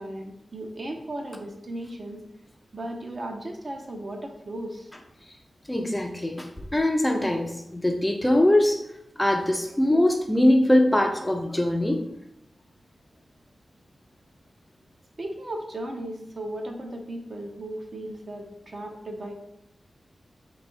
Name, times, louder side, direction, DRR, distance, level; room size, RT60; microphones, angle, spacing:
voice 1, 0.0-2.2 2.7-4.9 15.2-19.3, right 1 dB, 40° right, 2 dB, 0.6 m, -36 dB
voice 2, 5.7-8.8 9.2-12.1, left 1 dB, 10° left, 3 dB, 0.4 m, -22 dB
3.1 x 2.6 x 4.2 m, 0.81 s
wide cardioid pair, 125°, 0 cm